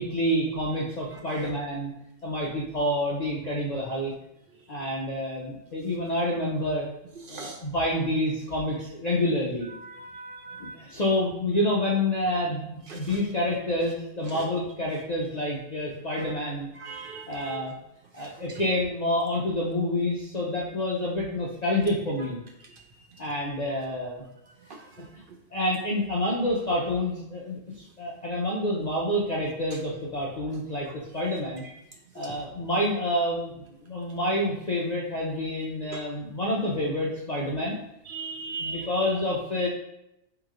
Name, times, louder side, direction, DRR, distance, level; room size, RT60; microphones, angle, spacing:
voice 1, 0.0-1.9 2.2-4.1 4.7-6.9 7.3-9.7 10.6-16.7 17.3-17.8 18.1-22.4 23.2-24.2 25.1-25.2 25.5-30.9 31.1-31.6 32.1-33.5 33.8-37.8 38.6-39.7, left 1 dB, 45° left, -4 dB, 0.6 m, -28 dB
voice 2, 10.1-10.7 16.8-17.6 38.1-38.9, right 4 dB, 60° right, 2 dB, 0.6 m, -37 dB
3.8 x 2.9 x 4.8 m, 0.85 s
omnidirectional pair, 1.3 m